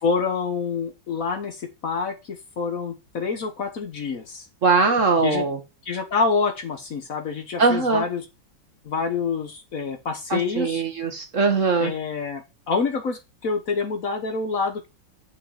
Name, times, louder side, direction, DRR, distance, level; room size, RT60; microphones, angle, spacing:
voice 1, 0.0-4.5 5.2-5.4 5.8-8.2 8.8-10.8 11.8-14.9, left 5 dB, 50° left, 7 dB, 1.3 m, -27 dB
voice 2, 4.6-5.6 7.6-8.0 10.3-11.9, right 4 dB, 45° right, 6 dB, 1.4 m, -21 dB
6.3 x 5.5 x 5.7 m, 0.26 s
omnidirectional pair, 2.1 m